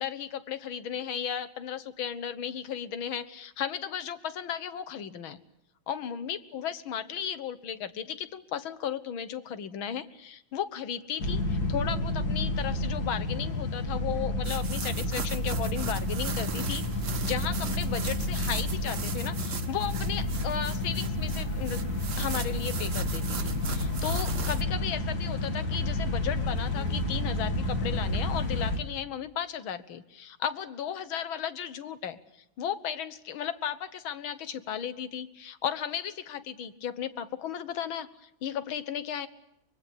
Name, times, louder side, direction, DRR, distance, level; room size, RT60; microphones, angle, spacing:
voice 1, 0.0-5.4 5.9-21.8 22.2-32.2 32.6-39.3, left 8 dB, 80° left, 13 dB, 2.1 m, -35 dB
sound 1, 11.2-28.8, left 2 dB, 50° left, 3.3 m, -30 dB
sound 2, 14.4-24.6, right 7 dB, 45° right, 1.3 m, -39 dB
25.0 x 22.0 x 8.6 m, 0.79 s
omnidirectional pair, 2.2 m